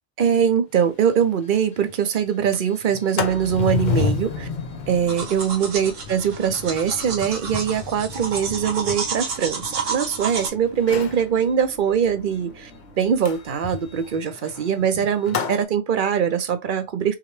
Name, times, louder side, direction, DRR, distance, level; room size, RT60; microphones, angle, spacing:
voice 1, 0.2-4.5 4.9-12.7 13.0-17.1, right 8 dB, 50° right, 0.7 m, -22 dB
Sliding door, 0.8-0.9 1.2-1.3 1.6-1.9 2.3-10.3 10.8-11.2 13.2-15.6, left 6 dB, 50° left, 0.6 m, -31 dB
sound 1, 3.2-14.1, left 1 dB, 75° left, 1.5 m, -44 dB
brushing teeth -binaural, 5.1-10.5, right 5 dB, 80° right, 1.4 m, -30 dB
5.7 x 2.1 x 3.1 m
omnidirectional pair, 1.3 m